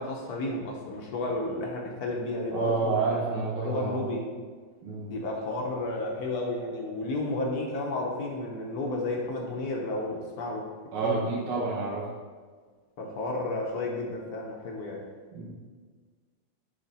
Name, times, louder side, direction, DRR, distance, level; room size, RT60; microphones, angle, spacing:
voice 1, 0.0-3.2 3.6-4.3 5.1-10.7 11.0-11.3 13.0-15.0, left 2 dB, 60° left, 0 dB, 1.1 m, -32 dB
voice 2, 2.5-4.1 4.8-5.1 10.9-12.1 15.3-15.7, right 4 dB, 80° right, -5 dB, 1.9 m, -29 dB
8.6 x 3.4 x 4.1 m, 1.5 s
omnidirectional pair, 2.3 m